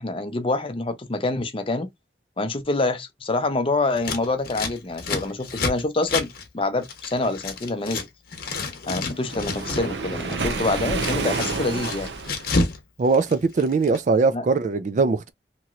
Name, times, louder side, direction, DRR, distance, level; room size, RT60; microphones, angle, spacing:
voice 1, 0.0-1.9 2.4-8.1 8.9-12.1 14.3-14.4, left 2 dB, 30° left, 0.6 m, -26 dB
Scissors, 4.0-8.1 8.3-9.9 10.2-12.8 13.0-14.0, left 3 dB, 55° left, 0.9 m, -29 dB
Waves surf, 9.2-12.5, right 3 dB, 80° right, 0.7 m, -29 dB
voice 2, 13.0-15.3, right 4 dB, 45° right, 0.3 m, -21 dB
3.0 x 2.9 x 2.4 m
head